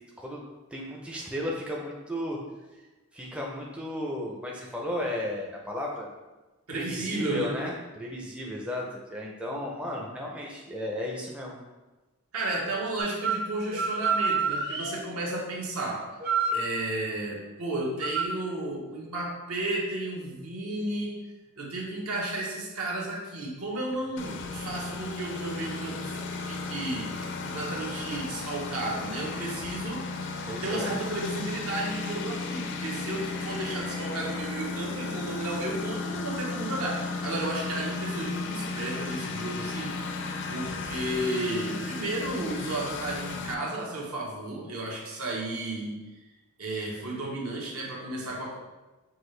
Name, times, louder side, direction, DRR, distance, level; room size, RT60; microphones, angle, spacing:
voice 1, 0.7-2.4 3.1-6.1 6.7-11.6 30.5-30.9, left 1 dB, 5° right, -2 dB, 0.4 m, -34 dB
voice 2, 6.7-7.6 12.3-16.1 16.5-21.2 21.6-30.3 30.6-39.9 40.5-45.9 46.6-48.5, right 2 dB, 70° right, -3 dB, 1.0 m, -33 dB
sound 1, 13.0-13.4 13.7-15.0 16.2-16.6 18.0-18.2, right 5 dB, 40° right, 0.7 m, -27 dB
Engine, 24.2-43.5, left 3 dB, 55° left, 0.4 m, -34 dB
6.0 x 2.5 x 3.2 m, 1.1 s
head